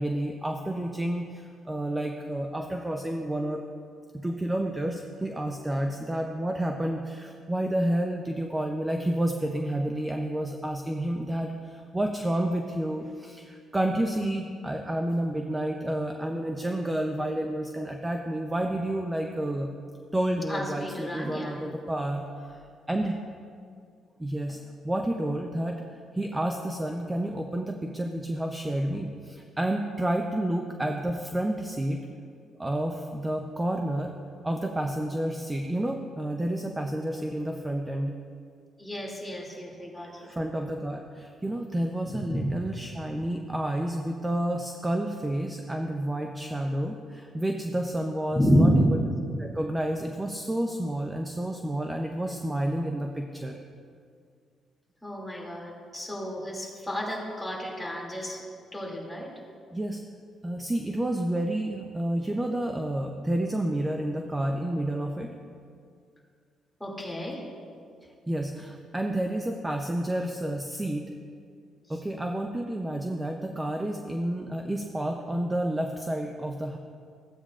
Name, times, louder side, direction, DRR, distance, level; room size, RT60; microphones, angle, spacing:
voice 1, 0.0-3.6 4.2-19.7 20.1-23.2 24.2-24.6 24.8-25.8 26.1-32.0 32.6-34.1 34.4-38.1 40.2-49.0 49.4-53.6 59.7-60.0 60.4-65.3 68.3-71.1 71.9-76.8, right 1 dB, 15° right, 4 dB, 0.6 m, -30 dB
voice 2, 20.5-21.6 38.8-40.3 42.3-42.5 48.3-48.9 55.0-58.4 58.7-59.3 66.8-67.4 71.9-72.0, equal, 5° left, -4 dB, 2.6 m, -29 dB
15.0 x 8.6 x 2.5 m, 2.2 s
cardioid pair, 90°, 0 cm